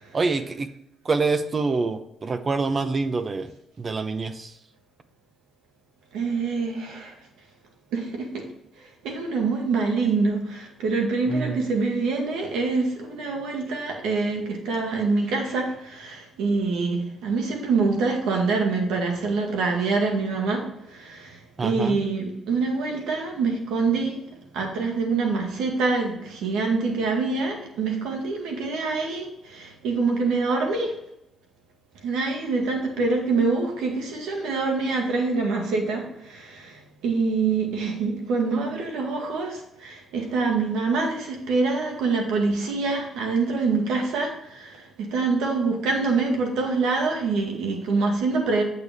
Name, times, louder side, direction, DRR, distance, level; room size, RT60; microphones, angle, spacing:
voice 1, 0.1-0.7 1.0-3.5 3.8-4.5 11.3-11.6 21.6-22.0, right 4 dB, 35° right, 10 dB, 0.9 m, -26 dB
voice 2, 6.1-7.1 7.9-8.4 9.0-24.2 24.5-30.9 32.0-48.6, right 4 dB, 90° right, 2 dB, 1.9 m, -25 dB
8.2 x 6.6 x 3.6 m, 0.81 s
cardioid pair, 90°, 0 cm